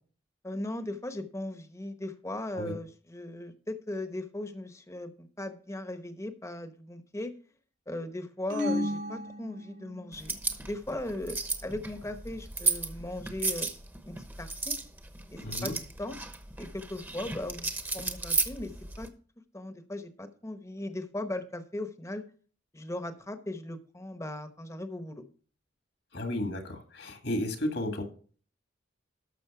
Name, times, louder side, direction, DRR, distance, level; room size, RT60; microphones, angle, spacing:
voice 1, 0.4-7.3 7.9-13.7 14.0-14.8 15.3-15.7 16.0-16.2 16.6-18.7 19.0-19.1 19.5-22.2 22.7-25.2, left 1 dB, 15° left, 9 dB, 1.0 m, -38 dB
sound 1, 8.5-10.2, left 1 dB, 85° right, 3.2 m, -33 dB
sound 2, 10.1-19.1, right 3 dB, 10° right, 1.0 m, -34 dB
voice 2, 15.4-15.7 26.1-28.0, left 1 dB, 70° left, 5 dB, 2.0 m, -33 dB
12.5 x 6.3 x 4.8 m, 0.43 s
head